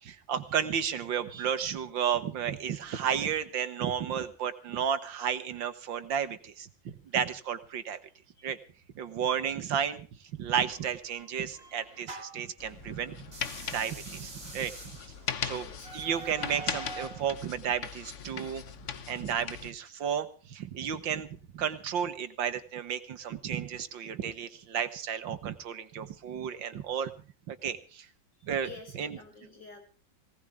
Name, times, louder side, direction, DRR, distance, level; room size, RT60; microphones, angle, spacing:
voice 1, 0.0-8.0 8.4-8.6 9.0-10.1 10.4-13.2 13.7-14.7 15.4-15.7 15.9-18.6 19.1-21.3 21.5-27.1 27.5-28.1 28.4-29.2, right 8 dB, 80° right, 12 dB, 2.1 m, -32 dB
sound 1, 10.7-12.5 13.2-17.2, right 3 dB, 35° right, 2.5 m, -45 dB
sound 2, 12.6-19.7, left 7 dB, 50° left, 1.1 m, -39 dB
voice 2, 28.6-29.8, left 4 dB, 65° left, 3 dB, 6.7 m, -49 dB
19.0 x 18.5 x 3.5 m, 0.37 s
omnidirectional pair, 2.0 m